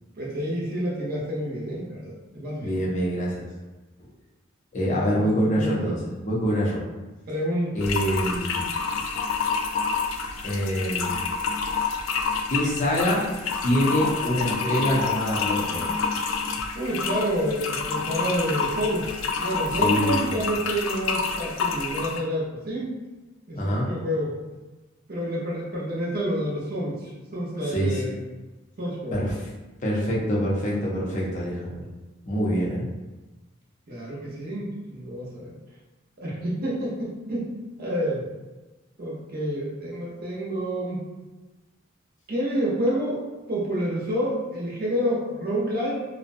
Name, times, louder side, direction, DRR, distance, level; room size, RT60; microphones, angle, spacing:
voice 1, 0.2-2.8 4.8-5.9 7.3-8.2 16.7-23.0 23.5-24.3 25.1-28.2 28.8-29.2 33.9-35.6 36.2-37.5 37.8-38.2 39.0-41.0 42.3-46.1, equal, 50° right, -5 dB, 0.7 m, -29 dB
voice 2, 2.6-3.5 4.7-6.8 7.7-8.7 10.4-11.2 12.5-13.3 13.6-15.9 19.8-20.4 23.5-23.9 27.7-28.0 29.1-29.5 29.8-31.9 32.2-32.9, equal, 40° left, -4 dB, 0.6 m, -25 dB
sound 1, 7.8-22.2, left 5 dB, 75° left, 0.3 m, -28 dB
2.5 x 2.2 x 2.5 m, 1.2 s
head